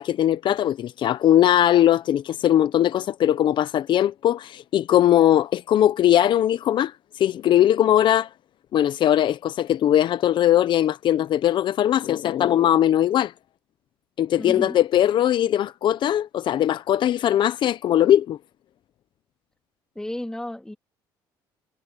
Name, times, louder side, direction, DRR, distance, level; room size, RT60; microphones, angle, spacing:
voice 1, 0.0-8.3 8.7-13.3 14.2-18.4, left 11 dB, 60° left, 0.8 m, -20 dB
voice 2, 14.4-14.8 20.0-20.8, left 1 dB, 5° left, 2.2 m, -32 dB
cardioid pair, 90°, 9 cm